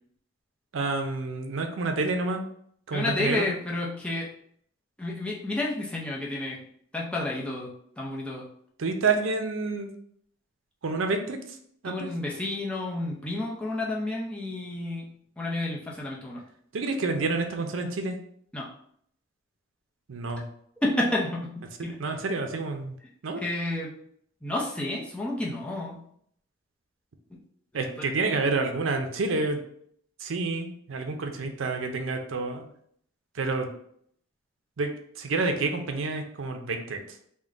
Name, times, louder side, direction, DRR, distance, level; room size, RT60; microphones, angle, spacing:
voice 1, 0.7-2.5 2.9-3.5 8.8-9.9 10.8-11.4 11.8-12.1 16.7-18.2 20.1-20.4 22.0-22.9 23.2-23.4 27.7-29.6 30.2-32.7 33.4-33.7 34.8-34.9 35.2-37.0, right 3 dB, 80° right, 5 dB, 0.5 m, -28 dB
voice 2, 2.9-4.3 5.0-6.6 6.9-8.4 11.8-16.4 18.5-18.7 20.8-22.0 23.4-23.9 24.4-26.0 27.7-28.1, left 2 dB, 5° left, -4 dB, 0.6 m, -31 dB
3.6 x 2.2 x 3.7 m, 0.66 s
head